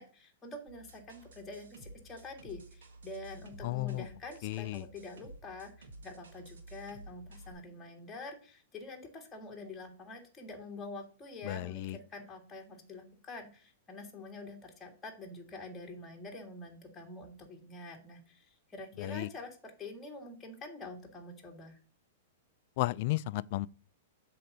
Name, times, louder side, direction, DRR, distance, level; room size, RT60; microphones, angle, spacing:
voice 1, 0.0-21.8, left 2 dB, 15° left, 1.8 m, -46 dB
sound 1, 0.7-7.5, right 1 dB, 80° right, 2.0 m, -52 dB
voice 2, 3.6-4.0 4.4-4.8 11.4-12.0 19.0-19.3 22.8-23.7, left 18 dB, 50° left, 0.3 m, -33 dB
7.6 x 3.9 x 6.5 m
hypercardioid pair, 130°, 0 cm